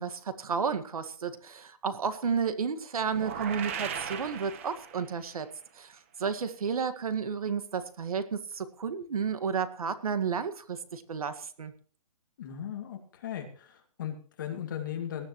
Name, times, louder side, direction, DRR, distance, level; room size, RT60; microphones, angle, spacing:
voice 1, 0.0-5.5 5.8-11.7, right 6 dB, 65° right, 10 dB, 1.9 m, -32 dB
sound 1, 3.1-5.3, right 7 dB, 20° right, 1.1 m, -37 dB
voice 2, 12.4-15.3, left 9 dB, 30° left, 4 dB, 2.4 m, -37 dB
19.0 x 13.5 x 3.1 m, 0.43 s
hypercardioid pair, 180°, 19 cm